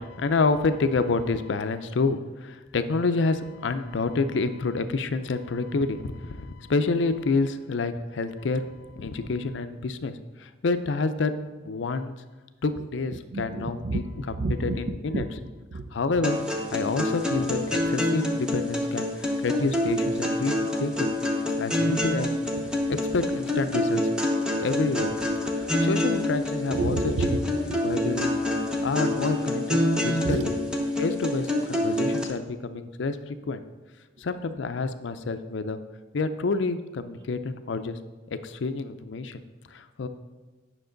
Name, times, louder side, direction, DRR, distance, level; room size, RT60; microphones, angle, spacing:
voice 1, 0.0-11.3 11.6-12.1 12.6-14.0 14.6-15.2 15.9-16.4 16.7-20.5 20.8-21.1 21.6-22.3 22.9-24.1 24.6-27.4 27.8-28.3 28.8-30.5 31.0-33.6 34.2-35.8 36.1-38.0 38.3-39.4 39.7-40.1, left 3 dB, 75° left, 10 dB, 0.5 m, -28 dB
voice 2, 13.1-14.0 14.3-15.3 15.7-16.0 26.7-28.1 30.2-30.9, right 3 dB, 65° right, 10 dB, 0.5 m, -30 dB
sound 1, 16.2-32.2, left 1 dB, 5° right, 0.7 m, -27 dB
9.2 x 5.9 x 3.9 m, 1.2 s
head